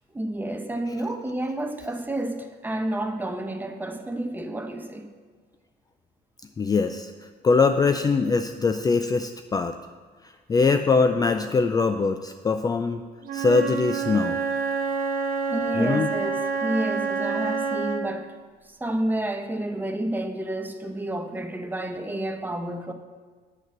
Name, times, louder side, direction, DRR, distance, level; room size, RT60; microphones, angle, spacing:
voice 1, 0.1-5.1 15.5-18.3 18.7-22.9, right 1 dB, 10° right, 0.8 m, -30 dB
voice 2, 6.6-7.1 7.4-9.8 10.5-13.0 13.3-14.4 15.8-16.1, left 4 dB, 20° left, 0.4 m, -22 dB
Wind instrument woodwind instrument, 13.2-18.2, right 5 dB, 60° right, 0.8 m, -27 dB
8.0 x 6.0 x 7.3 m
cardioid pair, 110°, 17 cm